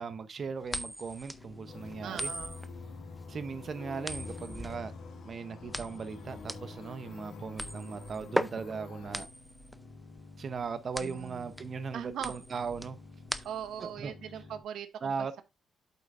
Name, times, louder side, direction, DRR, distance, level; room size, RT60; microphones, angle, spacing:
voice 1, 0.0-2.3 3.3-4.9 5.2-9.3 10.4-13.0 13.8-14.1 15.0-15.4, right 5 dB, 40° right, 0.7 m, -38 dB
sound 1, 0.7-13.9, equal, ahead, 0.5 m, -39 dB
sound 2, 1.3-14.6, left 3 dB, 60° left, 1.9 m, -52 dB
sound 3, 1.7-9.3, left 4 dB, 75° left, 1.6 m, -46 dB
voice 2, 2.0-2.6 11.0-11.6 11.9-12.6 13.4-15.4, right 9 dB, 75° right, 0.9 m, -41 dB
8.5 x 7.7 x 2.5 m
wide cardioid pair, 160°, 0 cm